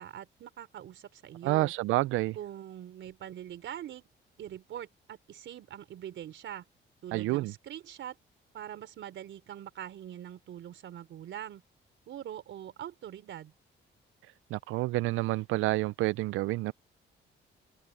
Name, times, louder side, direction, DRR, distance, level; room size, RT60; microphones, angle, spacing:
voice 1, 0.0-1.7 2.4-4.1 4.4-6.7 7.0-8.2 8.5-11.6 12.1-13.5, right 11 dB, 70° right, 3.9 m, -43 dB
voice 2, 1.4-2.4 7.1-7.5 14.5-16.7, right 18 dB, 85° right, 0.4 m, -29 dB
open air
cardioid pair, 90°, 20 cm